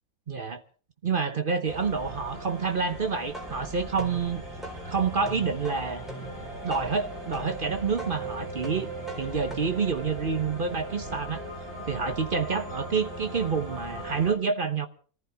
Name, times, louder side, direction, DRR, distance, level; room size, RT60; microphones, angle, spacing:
voice 1, 0.3-0.6 1.0-4.4 4.9-6.1 6.6-8.9 9.2-11.4 11.9-14.9, right 5 dB, 40° right, 1.0 m, -28 dB
sound 1, 1.6-14.3, right 1 dB, 85° right, 5.3 m, -39 dB
sound 2, 3.2-10.8, right 2 dB, ahead, 3.9 m, -43 dB
26.0 x 14.5 x 3.5 m
omnidirectional pair, 1.5 m